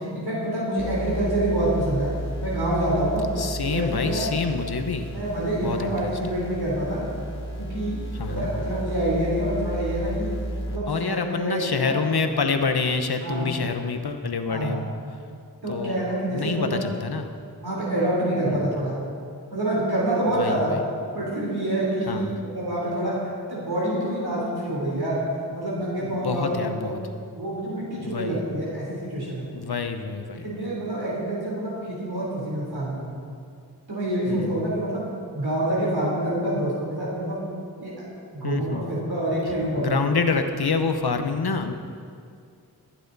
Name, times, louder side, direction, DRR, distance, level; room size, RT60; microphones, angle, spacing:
voice 1, 0.0-2.1 2.4-3.3 3.6-4.3 5.1-7.1 7.6-8.0 8.3-10.3 10.7-12.0 13.2-13.5 14.5-14.8 15.6-16.8 17.6-19.0 19.5-20.8 21.1-23.2 23.5-25.2 25.5-26.9 27.3-29.5 30.3-33.2 33.9-35.0 35.3-37.4 37.8-37.9 38.3-40.0, right 1 dB, 80° right, -6 dB, 3.6 m, -27 dB
sound 1, 0.8-10.8, right 1 dB, 30° left, 2.4 m, -33 dB
voice 2, 3.4-5.1 5.6-6.1 8.1-8.5 10.9-14.9 15.7-16.0 16.3-17.3 18.5-18.7 20.3-20.8 22.1-22.4 26.1-27.0 28.0-28.4 29.5-30.7 34.3-34.6 38.4-38.8 39.8-41.7, left 4 dB, 80° left, 7 dB, 1.0 m, -27 dB
21.5 x 9.2 x 4.1 m, 2.3 s
wide cardioid pair, 55°, 38 cm